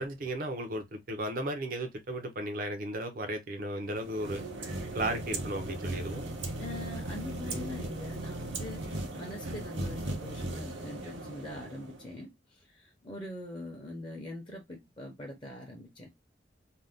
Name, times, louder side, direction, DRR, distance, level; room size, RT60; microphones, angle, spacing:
voice 1, 0.0-4.4 4.9-6.2, right 1 dB, 50° right, 0.5 m, -35 dB
sound 1, 3.9-12.1, right 2 dB, 80° right, 0.7 m, -38 dB
voice 2, 6.6-16.1, left 1 dB, 25° left, 0.6 m, -43 dB
2.6 x 2.1 x 3.3 m
head